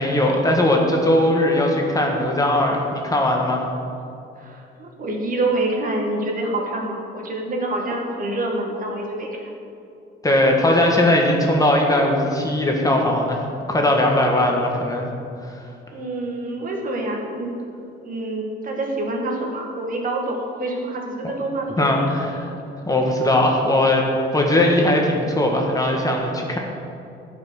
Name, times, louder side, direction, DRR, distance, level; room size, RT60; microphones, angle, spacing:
voice 1, 0.0-3.6 10.2-13.4 13.7-15.0 21.2-21.3 21.8-22.5 22.8-24.0 24.3-26.6, left 1 dB, 15° left, 0 dB, 1.5 m, -19 dB
voice 2, 4.4-9.5 15.9-17.5 18.0-22.1, right 2 dB, 40° right, 0 dB, 2.1 m, -26 dB
15.0 x 5.8 x 6.5 m, 2.6 s
cardioid pair, 125°, 21 cm